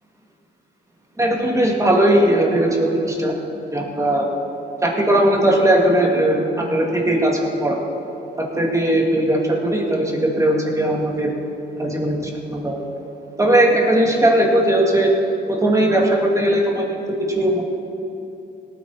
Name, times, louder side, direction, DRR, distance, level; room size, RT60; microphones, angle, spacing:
voice 1, 1.2-3.3 3.7-4.3 4.8-7.8 8.4-11.3 11.8-12.8 13.4-15.1 15.5-17.0 17.3-17.6, right 1 dB, 15° right, -1 dB, 2.3 m, -18 dB
18.0 x 9.5 x 4.3 m, 2.8 s
cardioid pair, 90°, 20 cm